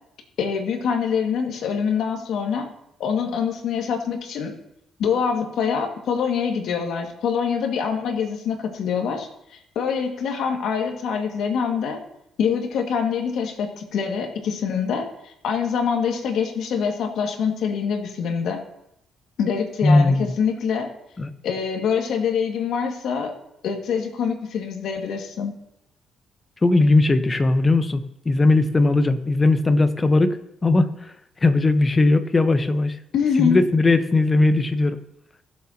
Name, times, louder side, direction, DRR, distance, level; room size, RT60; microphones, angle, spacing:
voice 1, 0.4-2.7 3.0-4.5 5.0-12.0 12.4-18.6 19.4-20.9 21.4-23.4 23.6-25.5 33.1-33.6, left 6 dB, 75° left, 3 dB, 2.1 m, -25 dB
voice 2, 19.8-20.3 21.2-21.3 26.6-30.4 30.6-30.9 31.4-33.0 33.4-35.0, left 2 dB, 25° left, 10 dB, 1.1 m, -18 dB
22.0 x 7.7 x 2.9 m, 0.79 s
cardioid pair, 90°, 0 cm